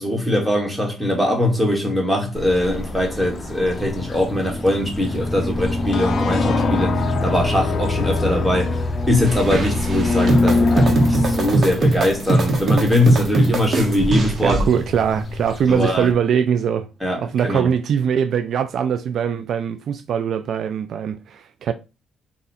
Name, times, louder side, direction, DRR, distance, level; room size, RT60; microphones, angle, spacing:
voice 1, 0.0-8.8 9.1-14.6 15.7-16.1 17.0-17.7, left 1 dB, 5° right, 1.6 m, -21 dB
sound 1, 2.3-16.1, left 2 dB, 40° left, 0.7 m, -24 dB
sound 2, 5.9-9.5, left 9 dB, 65° left, 0.4 m, -31 dB
sound 3, 9.2-14.7, right 2 dB, 50° right, 1.0 m, -21 dB
voice 2, 14.4-16.9 17.2-21.7, right 8 dB, 65° right, 0.3 m, -21 dB
4.1 x 2.4 x 4.1 m
cardioid pair, 90°, 0 cm